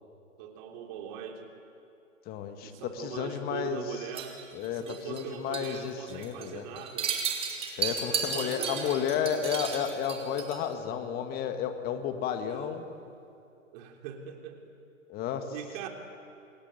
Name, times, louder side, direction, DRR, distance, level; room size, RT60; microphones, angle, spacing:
voice 1, 0.4-1.5 2.6-4.4 4.7-7.2 7.9-9.1 12.5-12.7 13.7-14.7 15.5-15.9, right 8 dB, 35° right, 3 dB, 3.5 m, -41 dB
voice 2, 2.3-3.8 4.5-6.6 7.8-12.9 15.1-15.5, left 8 dB, 25° left, 7 dB, 1.9 m, -32 dB
sound 1, 4.1-5.3 5.5-5.8 6.1-6.4 6.8-10.7, right 6 dB, 15° right, 3.0 m, -34 dB
Harp, 7.9-13.0, left 2 dB, 70° left, 5.7 m, -45 dB
28.0 x 22.0 x 9.2 m, 2.7 s
figure-of-eight pair, 125°, 39 cm